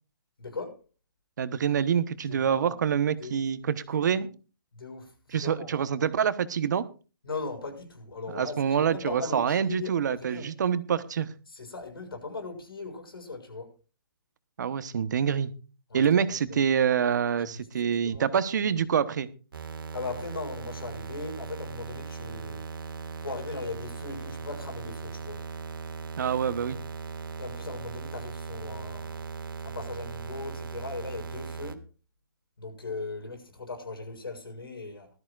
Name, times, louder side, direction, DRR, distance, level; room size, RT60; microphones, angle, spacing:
voice 1, 0.4-0.8 2.3-2.7 3.2-3.4 3.9-4.3 4.7-5.7 7.2-10.5 11.5-13.8 15.9-16.6 17.5-18.7 19.9-22.7 23.2-25.4 27.4-29.2 29.6-31.9 32.6-35.1, left 3 dB, 85° left, 6.8 m, -39 dB
voice 2, 1.4-4.3 5.3-6.8 8.3-11.3 14.6-15.5 15.9-19.3 26.2-26.8, right 7 dB, 55° right, 1.1 m, -26 dB
sound 1, 19.5-31.7, right 5 dB, 70° right, 1.7 m, -38 dB
19.5 x 13.0 x 2.5 m
hypercardioid pair, 160°, 12 cm